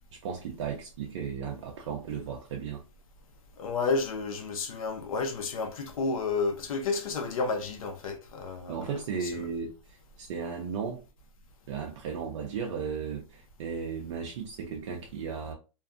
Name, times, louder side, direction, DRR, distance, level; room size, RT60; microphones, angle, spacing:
voice 1, 0.1-2.8 8.7-11.0 11.7-15.5, right 6 dB, 55° right, 0.5 m, -35 dB
voice 2, 3.6-8.9 9.2-9.3, left 4 dB, 80° left, 0.7 m, -31 dB
2.5 x 2.3 x 2.4 m
hypercardioid pair, 160°, 18 cm